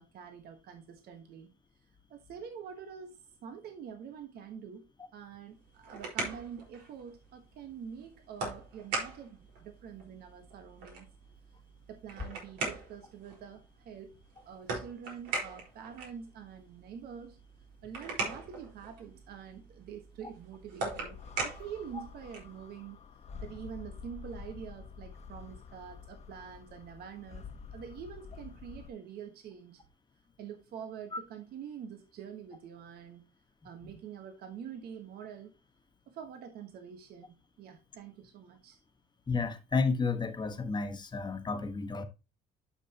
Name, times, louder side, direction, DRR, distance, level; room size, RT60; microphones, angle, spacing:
voice 1, 0.0-1.5 2.1-11.1 11.9-14.2 14.4-17.4 17.8-21.2 21.4-23.0 23.4-27.4 27.7-29.8 30.4-33.3 33.6-35.5 36.1-38.8, right 8 dB, 70° right, 1.4 m, -46 dB
sound 1, 5.5-22.6, right 3 dB, 90° right, 4.5 m, -41 dB
sound 2, 20.9-28.9, left 6 dB, 40° left, 1.1 m, -48 dB
voice 2, 39.3-42.0, left 4 dB, 25° left, 1.4 m, -32 dB
11.5 x 6.0 x 2.9 m
cardioid pair, 110°, 17 cm